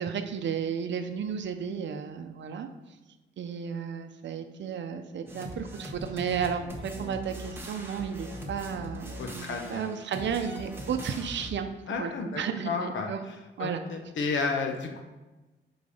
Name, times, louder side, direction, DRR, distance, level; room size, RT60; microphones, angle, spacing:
voice 1, 0.0-2.7 3.4-13.2 13.6-13.8, right 7 dB, 70° right, 7 dB, 0.6 m, -33 dB
sound 1, 5.3-11.5, equal, 10° right, 1.1 m, -41 dB
voice 2, 9.2-9.8 11.9-13.1 13.6-15.0, left 4 dB, 75° left, 3 dB, 1.0 m, -32 dB
8.4 x 4.0 x 5.5 m, 1.1 s
wide cardioid pair, 150°, 20 cm